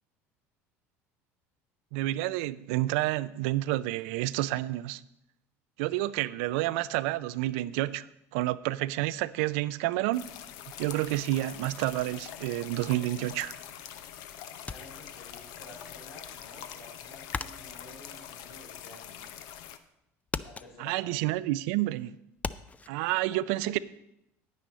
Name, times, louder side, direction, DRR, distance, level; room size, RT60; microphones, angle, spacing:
voice 1, 1.9-5.0 5.8-10.2 10.8-13.5 20.8-22.2 22.9-23.8, right 16 dB, 75° right, 0.4 m, -29 dB
sound 1, 10.1-19.8, left 10 dB, 70° left, 0.7 m, -44 dB
voice 2, 12.9-13.2 14.6-19.2 20.4-21.4 23.3-23.4, left 1 dB, 85° left, 4.4 m, -51 dB
sound 2, 14.7-15.7 16.0-19.3 19.6-20.0 20.3-22.9, left 4 dB, 20° left, 0.4 m, -39 dB
9.4 x 9.3 x 4.2 m
hypercardioid pair, 80°, 7 cm